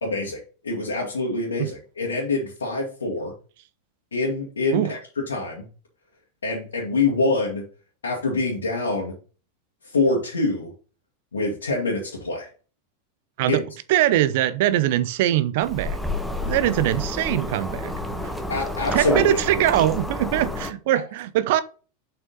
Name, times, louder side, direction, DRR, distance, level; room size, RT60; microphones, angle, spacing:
voice 1, 0.0-3.3 4.1-5.7 6.4-7.6 8.0-9.2 9.9-10.7 11.3-12.5 13.5-13.6 18.5-19.4, left 3 dB, 75° left, 1.9 m, -25 dB
voice 2, 13.9-16.0 16.4-17.9 18.2-18.3 18.9-21.6, right 13 dB, 55° right, 0.7 m, -22 dB
sound 1, 15.6-20.7, left 1 dB, ahead, 1.3 m, -29 dB
7.1 x 5.8 x 3.9 m
figure-of-eight pair, 90°, 0 cm